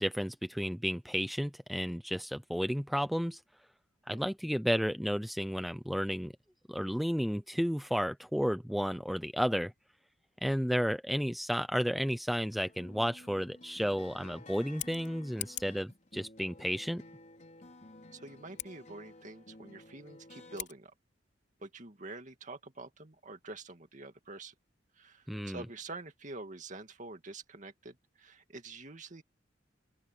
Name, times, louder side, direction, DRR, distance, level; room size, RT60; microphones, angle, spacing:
voice 1, 0.0-3.4 4.1-6.3 6.7-9.7 10.4-17.0 25.3-25.6, equal, ahead, 0.6 m, -32 dB
sound 1, 12.7-20.6, left 2 dB, 40° left, 4.6 m, -54 dB
Scissors, 14.6-15.9 18.5-18.7 20.5-20.8, left 14 dB, 70° left, 3.2 m, -42 dB
voice 2, 18.1-20.9 21.6-24.5 24.9-29.2, right 3 dB, 45° right, 2.2 m, -47 dB
open air
head